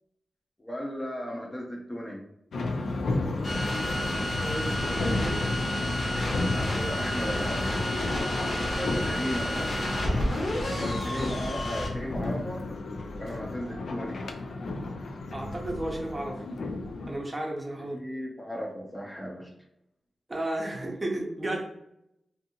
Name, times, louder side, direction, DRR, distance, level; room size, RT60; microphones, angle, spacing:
voice 1, 0.6-2.2 6.5-7.7 8.7-9.8 10.7-12.7 13.2-14.2 17.9-19.5, equal, 20° left, 0 dB, 0.6 m, -35 dB
sound 1, 2.5-17.2, left 2 dB, 75° left, 0.3 m, -32 dB
sound 2, 3.4-11.9, left 1 dB, 50° left, 0.9 m, -31 dB
voice 2, 4.4-5.5 15.3-16.5 17.1-18.0 20.3-21.6, right 1 dB, 25° right, 0 dB, 0.6 m, -33 dB
2.6 x 2.6 x 2.7 m, 0.77 s
cardioid pair, 85°, 0 cm